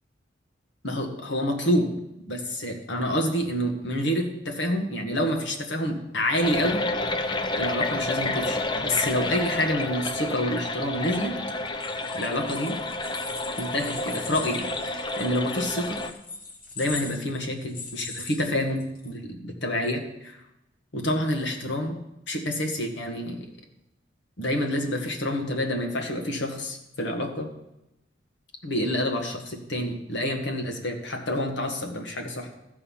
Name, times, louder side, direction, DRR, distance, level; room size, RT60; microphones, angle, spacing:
voice 1, 0.8-1.9 2.3-6.8 7.6-11.4 12.1-12.8 13.6-16.0 16.8-20.4 20.9-22.0 22.3-23.4 24.4-27.5 28.6-32.5, equal, 65° left, 3 dB, 1.5 m, -28 dB
sound 1, 6.4-16.1, left 2 dB, 25° left, 0.5 m, -30 dB
sound 2, 11.7-19.1, left 4 dB, 50° left, 1.4 m, -40 dB
14.5 x 5.4 x 5.6 m, 0.90 s
head